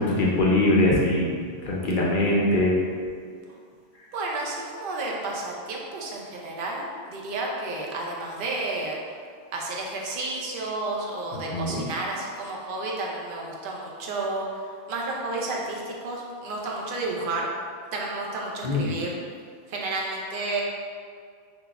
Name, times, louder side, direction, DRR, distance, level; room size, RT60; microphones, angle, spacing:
voice 1, 0.0-1.3 1.6-2.8 11.5-11.8 18.6-18.9, left 1 dB, 60° left, -4 dB, 0.6 m, -22 dB
voice 2, 4.1-9.0 9.5-17.5 17.9-19.2 19.7-20.6, right 2 dB, 55° right, -2 dB, 0.7 m, -31 dB
5.9 x 2.4 x 2.2 m, 2.1 s
omnidirectional pair, 1.3 m